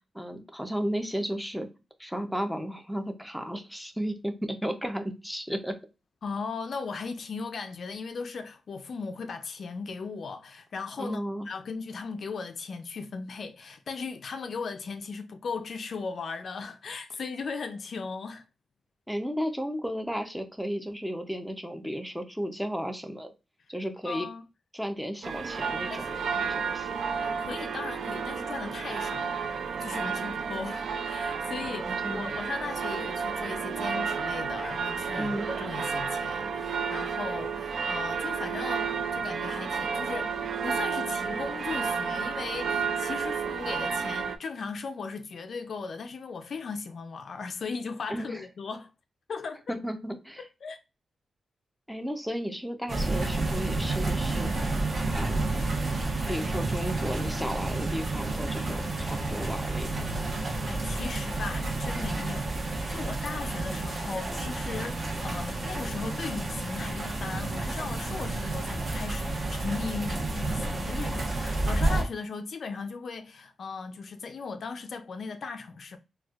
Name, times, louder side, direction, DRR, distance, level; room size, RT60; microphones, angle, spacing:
voice 1, 0.1-1.7 2.0-5.8 11.0-11.5 19.1-23.3 23.7-24.3 24.7-27.0 31.7-32.3 35.2-35.5 48.1-48.4 49.7-50.4 51.9-55.3 56.3-60.1, equal, ahead, 0.5 m, -34 dB
voice 2, 6.2-18.4 24.0-24.4 25.9-26.2 27.2-29.5 29.8-40.4 40.6-48.9 49.3-49.8 50.4-50.8 60.7-76.0, left 4 dB, 55° left, 0.4 m, -37 dB
sound 1, 25.2-44.4, right 6 dB, 70° right, 0.3 m, -31 dB
sound 2, 52.9-72.0, right 2 dB, 45° right, 0.9 m, -30 dB
4.1 x 2.2 x 2.3 m
wide cardioid pair, 130°, 0 cm